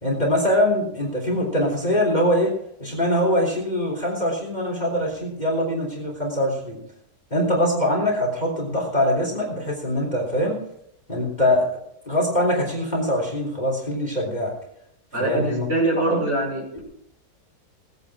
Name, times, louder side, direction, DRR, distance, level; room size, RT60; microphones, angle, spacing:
voice 1, 0.0-2.5 2.8-6.8 7.3-10.6 11.1-11.7 12.1-14.5 15.2-15.7 16.1-16.2, equal, 25° left, -1 dB, 3.7 m, -23 dB
voice 2, 15.1-16.8, right 1 dB, 35° right, -3 dB, 6.0 m, -24 dB
18.5 x 9.8 x 4.9 m, 0.74 s
omnidirectional pair, 1.9 m